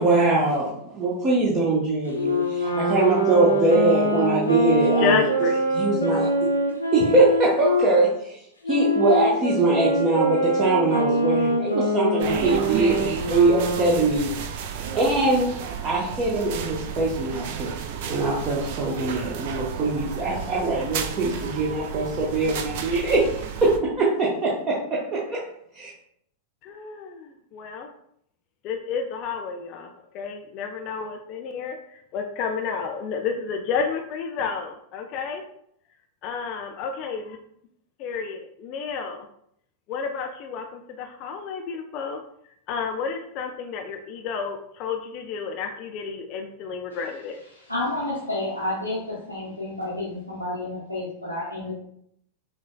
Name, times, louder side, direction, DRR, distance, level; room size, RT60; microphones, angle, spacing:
voice 1, 0.0-5.3 5.7-6.6 6.9-8.4 8.7-14.3 14.9-15.5 15.8-17.7 18.1-23.3 23.6-25.4 25.7-25.9, right 2 dB, 30° right, -6 dB, 0.8 m, -22 dB
Wind instrument woodwind instrument, 2.1-7.9 8.6-14.1, equal, 85° left, 0.7 m, -24 dB
voice 2, 5.0-5.7 6.1-6.3 26.6-27.9 28.6-35.4 36.2-37.4 38.0-39.3 39.9-42.2 42.7-47.4, left 5 dB, 40° left, 4 dB, 0.4 m, -31 dB
sound 1, 12.2-23.8, right 8 dB, 50° right, 0.4 m, -32 dB
voice 3, 47.5-51.7, left 1 dB, 85° right, -7 dB, 0.9 m, -30 dB
6.0 x 2.3 x 2.2 m, 0.71 s
figure-of-eight pair, 90°, 0 cm